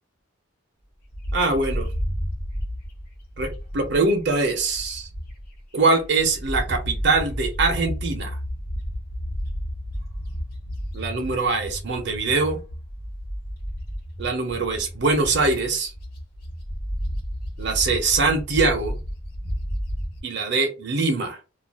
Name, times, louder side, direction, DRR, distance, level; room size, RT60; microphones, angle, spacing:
Bird, 1.1-5.6 6.0-20.2, equal, 45° left, 0.9 m, -32 dB
voice 1, 1.3-1.9 3.4-5.1 5.7-8.3 10.9-12.6 14.2-15.9 17.6-19.0 20.2-21.4, right 3 dB, 55° right, 0.6 m, -23 dB
2.4 x 2.3 x 3.4 m
head